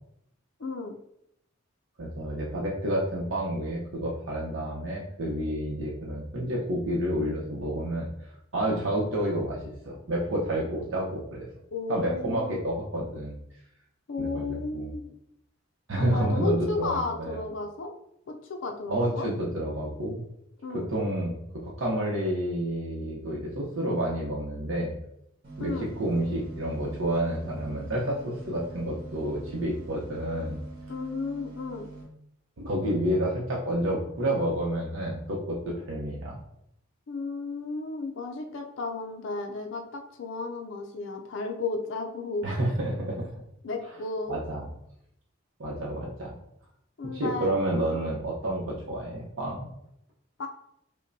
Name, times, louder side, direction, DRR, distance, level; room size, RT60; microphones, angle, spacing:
voice 1, 0.6-1.0 11.7-12.6 14.1-15.1 16.0-17.9 18.3-19.3 20.6-20.9 25.6-25.9 30.9-31.9 37.1-42.5 43.6-44.4 47.0-48.1 50.4-50.5, left 3 dB, 65° left, 3 dB, 0.4 m, -33 dB
voice 2, 2.0-9.6 9.8-11.5 11.9-13.3 14.2-14.9 15.9-17.5 18.9-20.2 20.9-21.3 21.6-24.9 25.6-30.6 32.6-36.3 42.4-43.2 44.3-44.6 45.6-46.3 47.1-49.7, right 1 dB, 70° right, -4 dB, 0.8 m, -29 dB
sound 1, 25.4-32.0, right 3 dB, 50° right, 1.4 m, -45 dB
5.1 x 2.2 x 2.6 m, 0.76 s
head